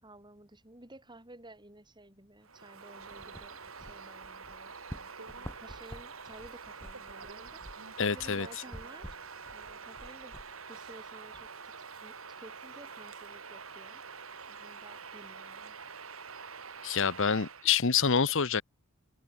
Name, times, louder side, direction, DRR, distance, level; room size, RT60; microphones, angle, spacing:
voice 1, 0.0-4.7 5.3-10.4 10.7-15.8, right 1 dB, 20° right, 6.6 m, -54 dB
Bird vocalization bird call bird song, 2.4-17.7, right 5 dB, 75° right, 3.7 m, -46 dB
sound 1, 3.0-11.5, equal, 10° left, 6.8 m, -50 dB
voice 2, 8.0-8.5 16.8-18.6, left 6 dB, 65° left, 1.1 m, -27 dB
open air
head